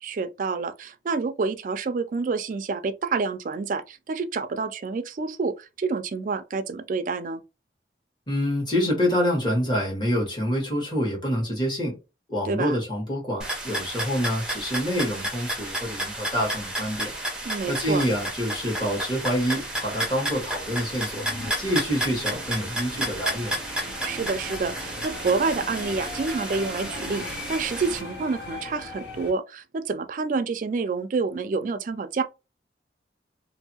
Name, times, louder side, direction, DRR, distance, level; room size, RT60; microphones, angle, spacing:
voice 1, 0.0-7.4 12.4-12.8 17.4-18.0 24.0-32.2, right 4 dB, 45° right, 0.3 m, -28 dB
voice 2, 8.3-11.9 12.3-17.1 17.7-21.2 21.6-23.6, equal, 25° left, 1.3 m, -26 dB
sound 1, 13.4-28.0, right 1 dB, 5° right, 0.6 m, -32 dB
sound 2, 16.2-29.3, left 1 dB, 70° left, 1.0 m, -41 dB
sound 3, 20.9-21.5, left 2 dB, 50° left, 1.3 m, -38 dB
2.6 x 2.6 x 2.8 m
head